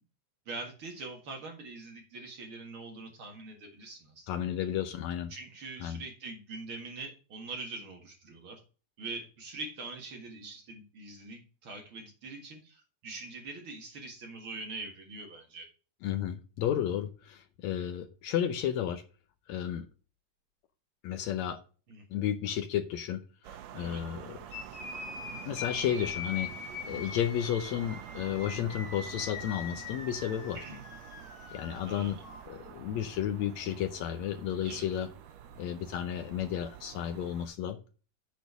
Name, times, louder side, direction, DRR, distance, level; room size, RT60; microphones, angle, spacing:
voice 1, 0.5-4.5 5.3-8.6 9.0-15.7 21.9-22.0 23.7-24.0 30.5-30.8 31.5-32.2 34.6-34.9, right 3 dB, 45° right, 2 dB, 2.0 m, -43 dB
voice 2, 4.3-5.3 5.8-6.0 16.0-19.0 19.5-19.8 21.0-21.6 22.1-23.2 23.5-24.4 25.4-26.5 26.8-30.6 31.5-32.2 32.5-35.1 35.6-37.8, left 10 dB, 75° left, 7 dB, 1.6 m, -32 dB
sound 1, 23.4-37.5, right 10 dB, 75° right, 1.6 m, -48 dB
sound 2, 24.5-32.4, left 5 dB, 55° left, 3.4 m, -42 dB
8.2 x 4.4 x 6.7 m, 0.36 s
omnidirectional pair, 4.0 m